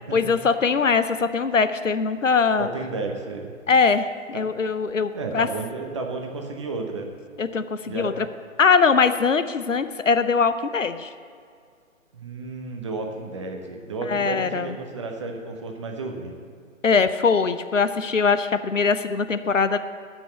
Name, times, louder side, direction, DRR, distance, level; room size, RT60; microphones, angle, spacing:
voice 1, 0.1-2.7 3.7-5.5 7.4-8.3 8.6-11.1 14.1-14.7 16.8-19.8, left 5 dB, 65° left, 11 dB, 0.8 m, -21 dB
voice 2, 2.6-3.5 4.3-4.4 5.1-7.1 7.8-8.3 12.1-16.4, right 3 dB, 20° right, 3 dB, 0.9 m, -32 dB
14.5 x 6.1 x 7.4 m, 2.2 s
figure-of-eight pair, 140°, 40 cm